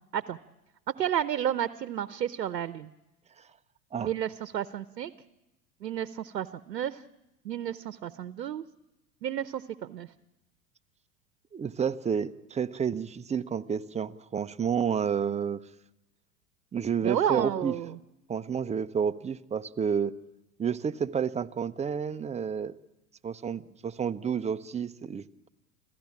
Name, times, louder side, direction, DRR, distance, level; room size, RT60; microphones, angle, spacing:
voice 1, 1.0-2.9 4.0-5.1 5.8-7.0 7.4-8.6 9.2-10.1 17.0-18.0, right 10 dB, 80° right, 15 dB, 0.9 m, -31 dB
voice 2, 11.5-15.6 16.7-17.7 18.3-20.1 20.6-22.8 23.2-25.5, right 7 dB, 15° right, 11 dB, 0.8 m, -30 dB
26.5 x 15.5 x 8.7 m, 0.96 s
hypercardioid pair, 90°, 48 cm